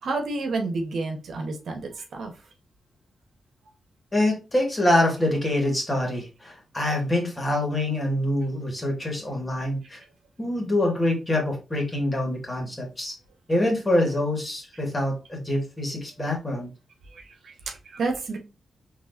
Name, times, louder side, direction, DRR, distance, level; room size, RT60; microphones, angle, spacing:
voice 1, 0.0-2.3 17.1-18.4, right 3 dB, 70° right, 1.2 m, -30 dB
voice 2, 4.1-10.0 10.4-13.1 13.5-16.7, left 1 dB, 20° left, 2.3 m, -25 dB
4.6 x 3.4 x 2.8 m
cardioid pair, 80°, 0 cm